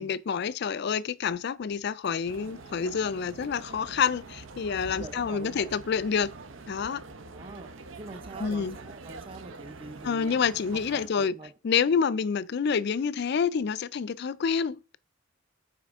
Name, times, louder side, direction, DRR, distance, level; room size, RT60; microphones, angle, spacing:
voice 1, 0.0-6.3 6.7-7.0 8.4-8.8 10.0-11.3 11.6-15.0, left 6 dB, 55° left, 0.4 m, -28 dB
sound 1, 2.3-11.1, right 3 dB, 75° right, 0.8 m, -45 dB
voice 2, 4.9-5.7 7.3-10.4 10.7-11.5, right 2 dB, 25° right, 0.7 m, -44 dB
8.1 x 5.1 x 3.6 m
head